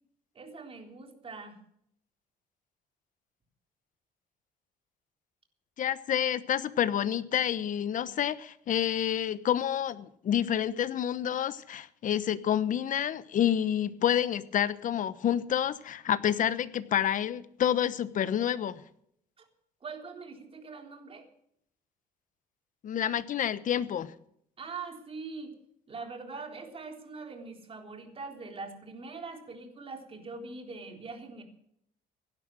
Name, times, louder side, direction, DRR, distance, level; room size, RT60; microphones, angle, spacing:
voice 1, 0.4-1.6 19.4-19.5 19.8-21.3 24.6-25.5 25.9-31.4, right 4 dB, 35° right, 4 dB, 3.8 m, -42 dB
voice 2, 5.8-18.8 22.8-24.1, left 10 dB, 50° left, 15 dB, 1.1 m, -28 dB
17.0 x 11.5 x 6.3 m, 0.71 s
cardioid pair, 110°, 17 cm